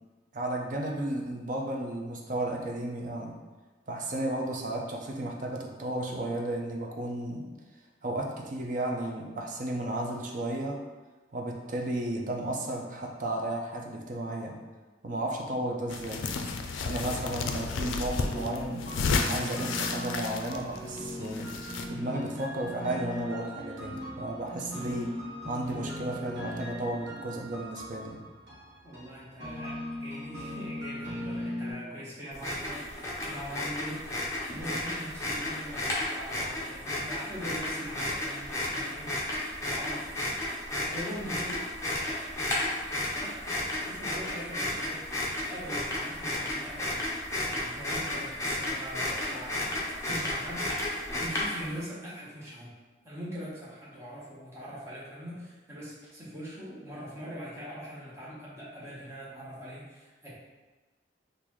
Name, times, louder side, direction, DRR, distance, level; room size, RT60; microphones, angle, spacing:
voice 1, 0.3-3.4 3.9-7.5 8.0-10.8 11.3-14.6 15.0-16.3 16.8-18.9 19.2-21.6 21.9-25.2 25.5-28.2, right 1 dB, 45° right, 1 dB, 0.5 m, -33 dB
sound 1, 15.9-21.9, left 4 dB, 85° left, 0.3 m, -32 dB
sound 2, 17.0-31.7, equal, 70° right, 1.1 m, -39 dB
voice 2, 28.8-34.0 34.5-39.1 39.7-40.1 40.5-42.3 42.9-47.0 47.4-49.8 50.0-52.7 53.0-60.3, equal, 15° right, -8 dB, 0.9 m, -42 dB
sound 3, 32.3-51.8, left 1 dB, 15° left, 0.6 m, -33 dB
3.8 x 2.5 x 3.0 m, 1.3 s
head